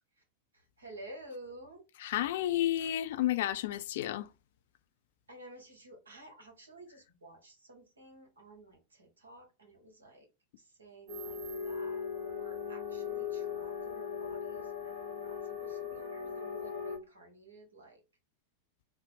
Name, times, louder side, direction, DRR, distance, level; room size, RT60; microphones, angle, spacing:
voice 1, 0.5-1.8 5.3-10.3 10.6-12.0 12.3-18.0, right 1 dB, 75° right, 1.2 m, -52 dB
voice 2, 2.0-4.3, left 13 dB, 55° left, 0.3 m, -31 dB
sound 1, 11.1-17.0, left 6 dB, 60° right, 0.9 m, -38 dB
3.8 x 2.1 x 3.7 m
figure-of-eight pair, 90°, 0 cm